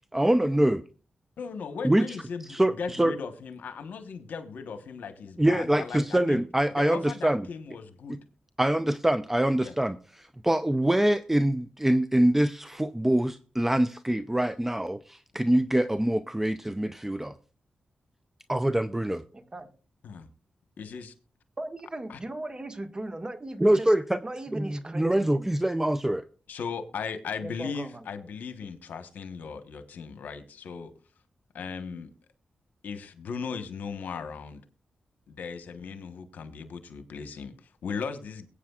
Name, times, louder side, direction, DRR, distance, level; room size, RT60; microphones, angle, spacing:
voice 1, 0.1-0.8 1.8-2.1 2.5-3.1 5.4-7.4 8.1-8.2 8.6-17.3 18.5-19.2 23.6-24.2 24.5-26.2, right 1 dB, 10° right, 0.5 m, -24 dB
voice 2, 1.4-6.4 6.8-8.2 9.6-9.7 20.0-20.3 20.8-21.1 22.1-22.2 26.5-30.9 31.5-32.1 32.8-34.6 35.3-38.5, left 5 dB, 85° left, 1.1 m, -37 dB
voice 3, 19.3-19.7 21.6-23.9 24.2-25.5 27.4-28.0, right 1 dB, 30° right, 1.7 m, -38 dB
22.0 x 8.5 x 2.4 m
cardioid pair, 65°, 3 cm